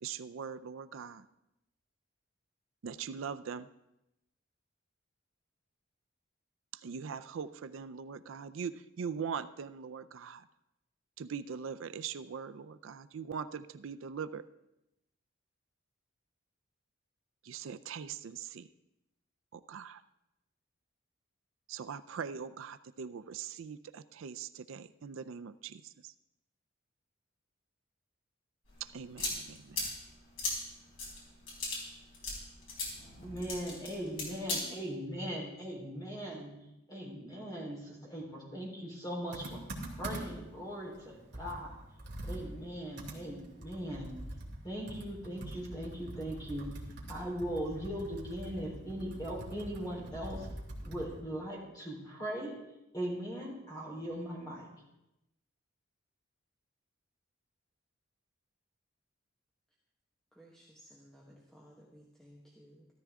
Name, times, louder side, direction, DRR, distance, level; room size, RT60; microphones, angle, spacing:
voice 1, 0.0-1.3 2.8-3.7 6.7-10.4 11.2-14.4 17.4-18.7 19.5-20.0 21.7-26.1 28.8-29.9, right 6 dB, 75° right, 13 dB, 0.4 m, -41 dB
sound 1, 28.7-34.6, left 3 dB, 75° left, 5.2 m, -38 dB
voice 2, 33.2-36.5 36.9-41.8 42.2-44.1 44.6-46.8 47.1-50.5 50.8-52.5 52.9-54.7, equal, 20° left, -3 dB, 3.7 m, -39 dB
Computer keyboard, 39.3-40.5 40.9-41.0 41.3-51.2, right 1 dB, 55° right, 2.4 m, -44 dB
voice 3, 60.4-62.9, equal, 5° left, -4 dB, 1.2 m, -58 dB
13.5 x 13.5 x 3.6 m, 0.89 s
head